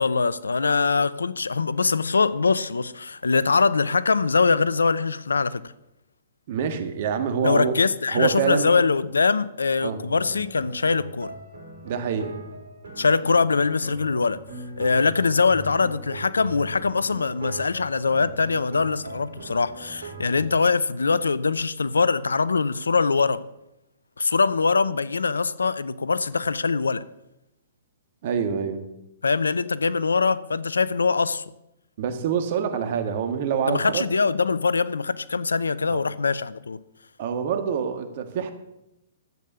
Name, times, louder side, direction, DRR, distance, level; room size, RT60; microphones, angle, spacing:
voice 1, 0.0-5.6 7.4-11.3 13.0-14.4 14.8-23.4 24.2-27.0 29.2-31.4 33.7-36.8, left 4 dB, 85° left, 0.6 m, -23 dB
voice 2, 6.5-7.8 8.1-8.7 9.8-10.0 11.8-12.4 28.2-28.9 32.0-34.0 35.9-36.0 37.2-38.5, right 7 dB, 50° right, 1.7 m, -26 dB
sound 1, 10.2-20.7, right 3 dB, 70° right, 3.2 m, -41 dB
12.0 x 8.4 x 6.9 m
hypercardioid pair, 125°, 0 cm